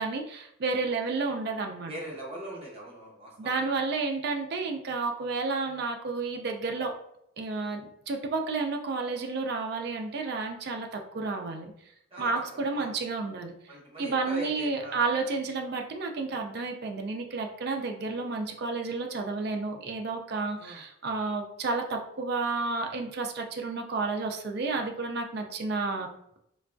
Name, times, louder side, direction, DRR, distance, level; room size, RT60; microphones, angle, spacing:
voice 1, 0.0-1.9 3.4-6.9 7.4-11.7 12.2-13.5 14.0-26.1, right 3 dB, 55° right, 3 dB, 0.4 m, -31 dB
voice 2, 1.9-3.7 12.1-12.3 12.6-12.9 13.7-15.1 20.6-20.8, right 1 dB, 30° right, -4 dB, 0.8 m, -41 dB
3.3 x 2.2 x 2.5 m, 0.76 s
head